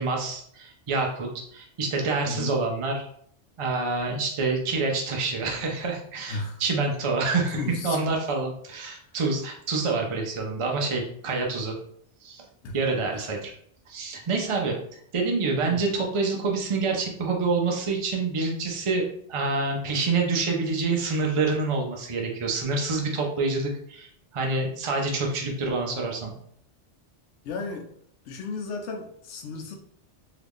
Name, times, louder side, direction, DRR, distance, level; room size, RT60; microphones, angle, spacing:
voice 1, 0.0-3.1 3.6-11.8 12.2-12.4 12.7-13.5 13.9-14.8 15.1-26.3, right 3 dB, 50° right, 0 dB, 0.3 m, -27 dB
voice 2, 2.2-2.6 6.3-6.6 7.6-8.0 12.6-12.8 15.6-15.8 27.4-27.8 28.3-29.8, left 3 dB, 80° left, 2 dB, 0.9 m, -34 dB
2.9 x 2.4 x 3.4 m, 0.66 s
omnidirectional pair, 1.2 m